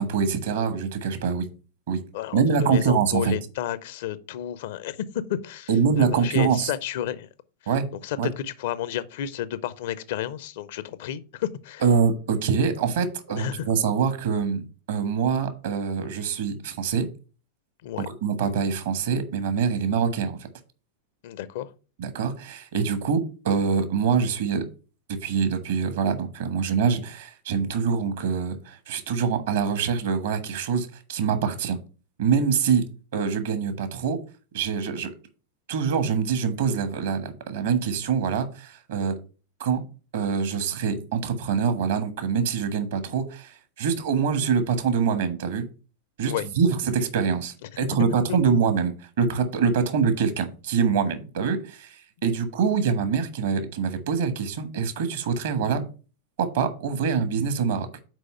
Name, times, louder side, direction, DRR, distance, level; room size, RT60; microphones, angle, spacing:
voice 1, 0.0-1.5 1.9-2.0 2.3-3.3 5.7-6.7 7.7-7.9 8.2-8.3 11.8-17.1 18.2-20.4 22.0-24.6 25.1-31.8 32.2-32.8 33.1-34.2 34.5-35.1 35.7-39.1 39.6-39.8 40.1-45.7 46.2-55.8 56.4-57.9, right 6 dB, 60° right, 1.4 m, -24 dB
voice 2, 2.1-5.0 5.3-5.7 6.0-7.3 8.0-8.2 8.4-11.8 13.4-13.7 17.8-18.1 21.2-21.7 46.3-46.5 48.3-48.4, left 11 dB, 55° left, 0.6 m, -31 dB
6.3 x 4.7 x 5.5 m
figure-of-eight pair, 90°, 0 cm